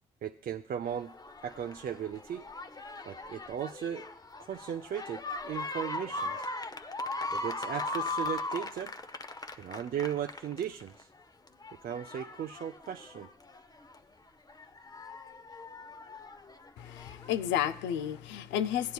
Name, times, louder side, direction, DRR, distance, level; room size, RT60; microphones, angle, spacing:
voice 1, 0.2-1.1 1.4-2.5 3.1-4.1 4.4-6.5 7.3-8.9 9.6-11.1 11.8-13.3, right 9 dB, 55° right, 5 dB, 0.4 m, -37 dB
sound 1, 0.9-11.0 11.5-14.0 14.5-17.3 18.1-18.2, left 2 dB, 20° left, 0.6 m, -39 dB
voice 2, 16.8-18.9, left 10 dB, 90° left, 12 dB, 0.4 m, -32 dB
16.0 x 9.3 x 2.3 m, 0.67 s
supercardioid pair, 55°, 18 cm